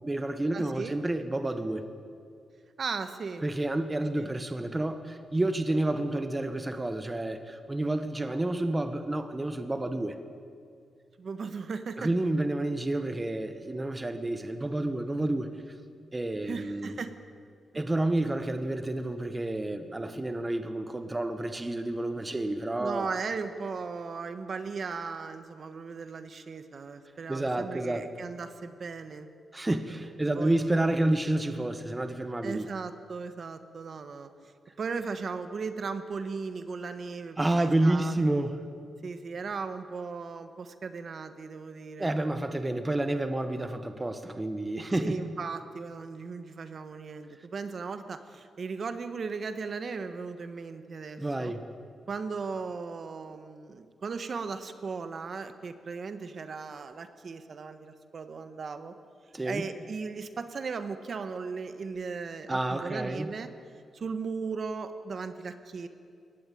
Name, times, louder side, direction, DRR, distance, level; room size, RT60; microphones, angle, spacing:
voice 1, 0.0-1.9 3.4-10.2 12.0-15.7 16.1-17.0 17.7-23.1 27.3-28.1 29.5-32.7 37.4-38.6 42.0-45.2 51.2-51.6 59.3-59.6 62.5-63.3, right 1 dB, 15° right, 9 dB, 1.2 m, -29 dB
voice 2, 0.5-1.0 2.8-3.4 4.2-4.3 11.2-12.1 16.4-17.1 22.8-29.3 30.3-30.7 32.4-34.3 34.8-38.2 39.0-42.2 45.0-51.5 52.1-58.9 59.4-63.5 63.9-65.9, right 5 dB, 45° right, 10 dB, 1.3 m, -37 dB
22.5 x 18.0 x 9.2 m, 2.3 s
wide cardioid pair, 135°, 0 cm